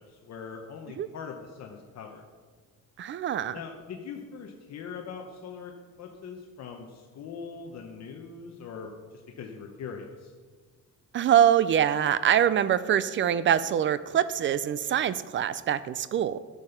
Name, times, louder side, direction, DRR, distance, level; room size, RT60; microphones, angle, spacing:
voice 1, 0.0-2.2 3.5-5.7 6.0-10.3, left 6 dB, 55° left, 2 dB, 1.0 m, -41 dB
voice 2, 3.0-3.6 11.1-16.4, right 10 dB, 40° right, 15 dB, 0.4 m, -24 dB
11.5 x 6.9 x 5.6 m, 1.5 s
cardioid pair, 175°, 32 cm